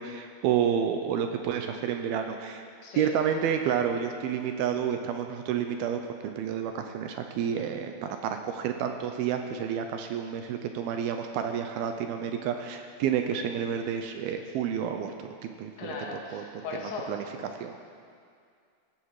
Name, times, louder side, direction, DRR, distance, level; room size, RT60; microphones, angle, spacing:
voice 1, 0.0-2.6 3.0-6.0 6.4-16.4 16.8-17.2 17.5-17.9, right 8 dB, 75° right, 5 dB, 2.4 m, -30 dB
voice 2, 15.8-17.1, left 4 dB, 90° left, -1 dB, 4.4 m, -37 dB
18.0 x 15.5 x 4.9 m, 2.3 s
omnidirectional pair, 4.9 m